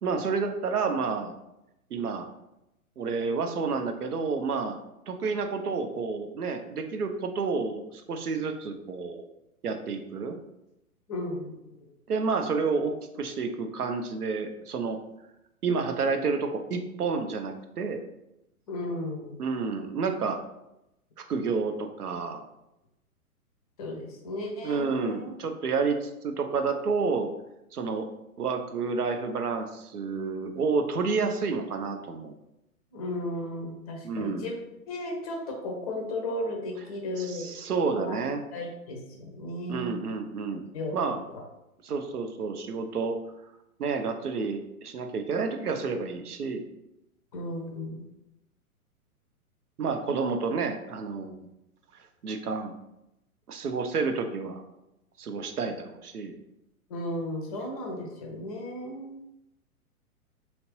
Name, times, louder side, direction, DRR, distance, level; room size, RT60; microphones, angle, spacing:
voice 1, 0.0-1.3 1.9-2.3 3.0-4.8 5.1-9.2 9.6-10.4 12.1-15.0 15.6-18.0 19.4-20.4 21.2-22.4 24.6-27.3 27.7-28.1 28.4-32.3 34.0-34.5 37.2-38.4 39.7-40.6 40.9-41.2 41.8-43.2 43.8-46.7 49.8-51.4 51.9-52.7 53.5-54.6 55.2-56.4, right 4 dB, 85° right, 6 dB, 0.5 m, -30 dB
voice 2, 11.1-11.5 18.7-19.4 23.8-25.3 32.9-34.6 34.9-37.5 38.0-38.2 38.5-40.0 40.7-41.0 47.3-48.0 56.9-59.2, left 1 dB, 25° left, 1 dB, 0.5 m, -34 dB
2.9 x 2.4 x 3.0 m, 0.89 s
figure-of-eight pair, 115°, 44 cm